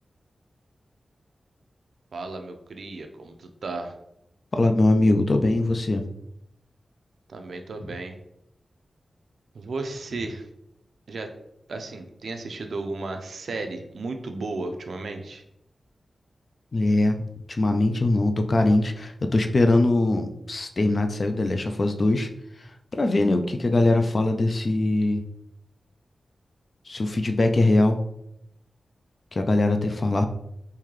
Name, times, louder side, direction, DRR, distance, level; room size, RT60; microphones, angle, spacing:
voice 1, 2.1-3.9 7.3-8.2 9.5-10.4 11.1-11.3 11.7-15.4, right 3 dB, 70° right, 6 dB, 0.4 m, -34 dB
voice 2, 4.5-6.0 16.7-17.2 17.6-22.3 22.9-25.2 26.9-28.0 29.4-30.2, left 2 dB, 40° left, 6 dB, 0.3 m, -21 dB
3.7 x 2.7 x 3.1 m, 0.79 s
wide cardioid pair, 160°, 0 cm